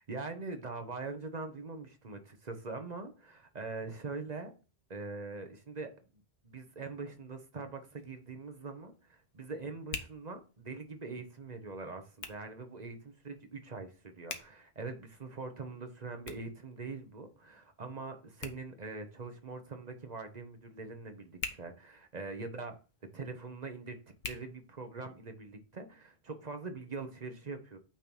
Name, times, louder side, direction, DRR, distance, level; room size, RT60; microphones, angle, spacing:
voice 1, 0.0-4.5 4.9-5.9 6.4-22.8 23.1-24.0 24.3-27.8, right 3 dB, 40° right, 1.0 m, -43 dB
Hands, 7.6-25.3, left 5 dB, 70° left, 1.1 m, -50 dB
9.0 x 3.0 x 5.4 m
omnidirectional pair, 1.1 m